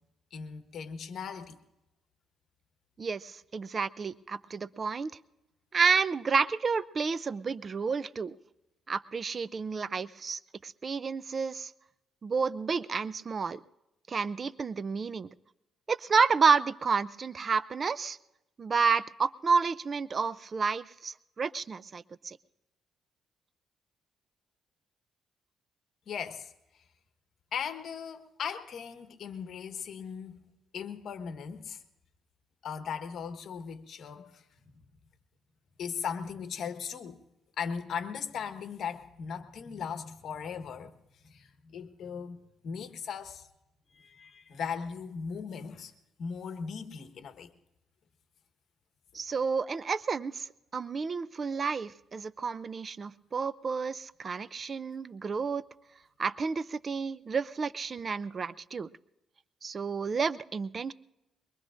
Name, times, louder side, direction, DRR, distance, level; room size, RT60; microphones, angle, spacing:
voice 1, 0.3-1.6 26.1-26.5 27.5-31.8 32.6-34.4 35.8-37.2 37.6-40.9 41.2-43.5 43.9-45.9 46.2-47.5, left 6 dB, 65° left, 1.2 m, -38 dB
voice 2, 3.0-5.1 5.7-8.3 8.9-11.7 12.2-13.6 14.1-15.3 15.9-18.2 18.6-22.4 49.1-50.5 50.7-55.6 56.2-58.9 59.6-60.9, right 5 dB, 40° right, 0.4 m, -30 dB
23.0 x 22.5 x 2.5 m
cardioid pair, 90°, 0 cm